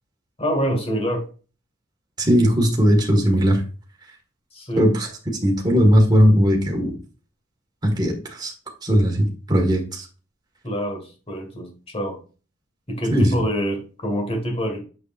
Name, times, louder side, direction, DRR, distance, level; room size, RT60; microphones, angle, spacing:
voice 1, 0.4-1.3 4.5-4.8 10.6-12.2 12.9-14.8, equal, 30° left, 3 dB, 1.8 m, -26 dB
voice 2, 2.2-3.6 4.8-5.1 5.4-6.9 7.8-8.5 8.8-10.0 13.1-13.4, equal, 20° right, 0 dB, 1.7 m, -18 dB
6.6 x 6.6 x 2.5 m, 0.36 s
head